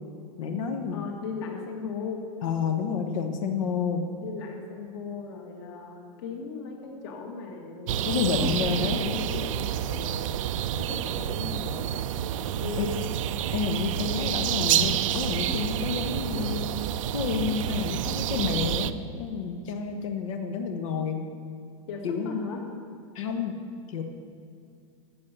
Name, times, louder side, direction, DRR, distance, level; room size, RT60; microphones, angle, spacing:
voice 1, 0.4-1.0 2.4-4.0 8.0-9.0 12.8-12.9 13.5-16.6 17.1-18.9 19.2-21.2 22.0-22.5 23.1-23.5 23.9-24.0, left 6 dB, 75° left, 5 dB, 1.2 m, -29 dB
voice 2, 0.9-2.2 4.2-10.2 10.8-11.9 12.6-13.1 21.9-22.7, left 5 dB, 50° left, 2 dB, 2.0 m, -37 dB
sound 1, 7.9-18.9, right 10 dB, 80° right, 0.5 m, -29 dB
12.5 x 7.5 x 6.7 m, 2.5 s
supercardioid pair, 180°, 17 cm